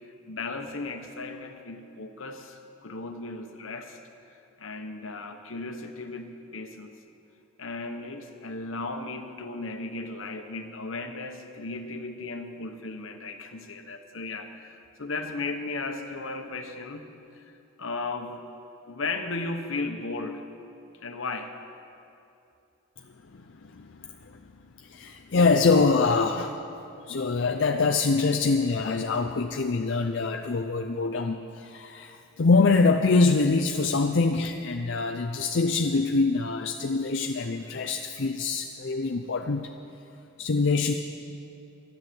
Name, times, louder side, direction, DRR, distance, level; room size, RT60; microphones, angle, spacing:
voice 1, 0.3-4.0 4.3-6.9 7.6-17.5 17.8-18.4 18.9-20.5 21.0-21.5, left 3 dB, 80° left, 6 dB, 1.1 m, -36 dB
voice 2, 23.3-24.3 24.8-26.5 27.0-39.7 40.4-40.9, left 4 dB, 60° left, 3 dB, 0.6 m, -24 dB
13.0 x 10.5 x 7.7 m, 2.7 s
head